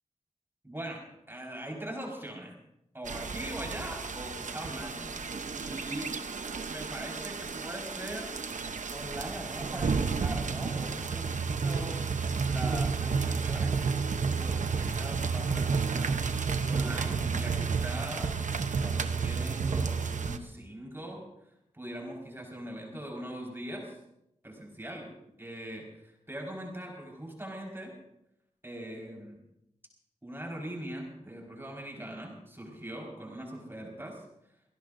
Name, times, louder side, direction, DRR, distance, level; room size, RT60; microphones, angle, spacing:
voice 1, 0.6-2.6 2.9-5.1 5.6-6.1 6.7-8.4 8.9-12.0 12.4-13.7 14.3-16.2 16.7-18.4 18.8-21.3 21.7-24.0 24.4-25.1 25.4-27.9 28.6-29.4 30.2-34.2, right 1 dB, 20° right, -1 dB, 4.9 m, -41 dB
sound 1, 3.0-20.4, right 5 dB, 80° right, 0.8 m, -31 dB
sound 2, 17.9-21.1, equal, 40° left, 4.2 m, -56 dB
26.0 x 17.0 x 2.7 m, 0.82 s
wide cardioid pair, 95°, 13 cm